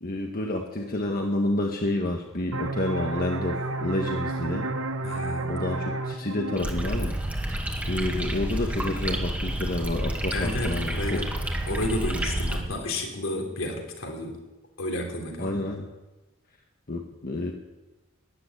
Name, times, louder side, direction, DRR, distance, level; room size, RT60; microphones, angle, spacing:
voice 1, 0.0-4.7 5.5-7.1 7.8-11.2 15.4-15.9 16.9-17.5, left 1 dB, 45° left, 2 dB, 1.5 m, -29 dB
sound 1, 2.5-7.9, right 2 dB, 80° right, 1.3 m, -32 dB
voice 2, 5.0-5.5 10.3-11.3 11.7-14.4 14.8-15.6, left 1 dB, 80° left, 1 dB, 3.6 m, -31 dB
sound 2, 6.6-12.6, right 1 dB, 10° right, 2.1 m, -29 dB
13.5 x 10.5 x 9.9 m, 1.1 s
head